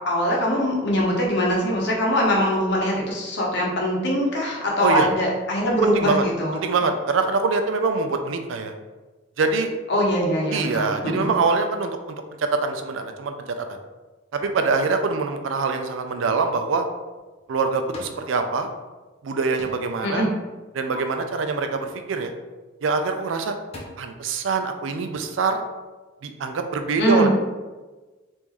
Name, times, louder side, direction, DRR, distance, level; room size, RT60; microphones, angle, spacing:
voice 1, 0.0-6.6 9.9-11.2 20.0-20.3 27.0-27.3, equal, 65° left, -2 dB, 0.8 m, -22 dB
voice 2, 5.8-6.2 6.5-8.7 9.4-9.7 10.5-13.7 14.3-16.9 17.5-18.7 19.2-20.3 20.7-22.3 22.8-23.5 24.0-25.6 26.2-27.3, right 4 dB, 90° right, 6 dB, 0.4 m, -24 dB
sound 1, 17.2-18.3 18.6-19.3 19.6-20.0 20.4-21.0 22.8-23.0 23.4-23.8, left 1 dB, 35° left, 0.7 m, -43 dB
3.0 x 2.6 x 3.6 m, 1.3 s
head